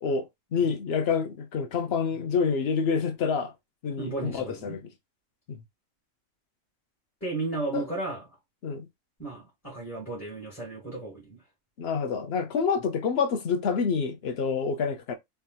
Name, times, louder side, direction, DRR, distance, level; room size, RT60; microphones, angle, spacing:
voice 1, 0.0-3.5 3.8-4.8 5.5-5.6 7.7-7.9 8.6-8.9 11.8-15.2, left 5 dB, 55° left, 0.8 m, -27 dB
voice 2, 4.0-4.8 7.2-8.2 9.2-11.4, right 2 dB, 10° left, 1.4 m, -34 dB
3.5 x 2.7 x 2.3 m
omnidirectional pair, 1.5 m